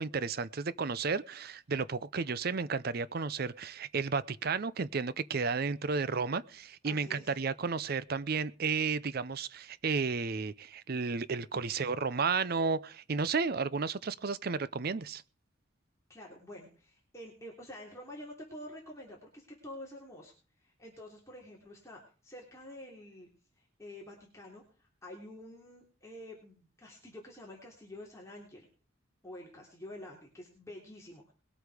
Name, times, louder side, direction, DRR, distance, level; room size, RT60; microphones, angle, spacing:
voice 1, 0.0-15.2, right 5 dB, 50° right, 0.6 m, -33 dB
voice 2, 6.8-7.3 11.5-11.6 16.1-20.3 20.6-23.3 23.6-28.7 29.2-31.3, left 1 dB, 15° left, 3.2 m, -48 dB
20.5 x 8.2 x 5.0 m
head